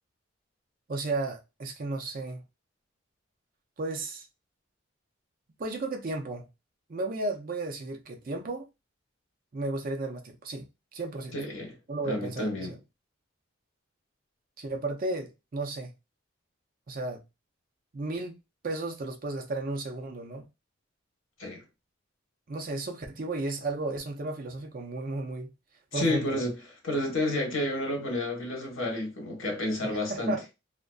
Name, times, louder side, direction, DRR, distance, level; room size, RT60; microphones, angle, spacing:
voice 1, 0.9-2.4 3.8-4.3 5.6-6.4 6.9-8.7 9.5-11.3 11.9-12.8 14.6-15.9 16.9-17.2 17.9-18.4 18.6-20.5 22.5-25.5 25.9-26.4 29.8-30.4, right 2 dB, 45° right, 0.5 m, -34 dB
voice 2, 11.3-11.8 12.0-12.7 21.4-21.6 25.9-26.6 26.8-30.4, left 1 dB, 75° left, 1.0 m, -30 dB
2.5 x 2.4 x 2.2 m
head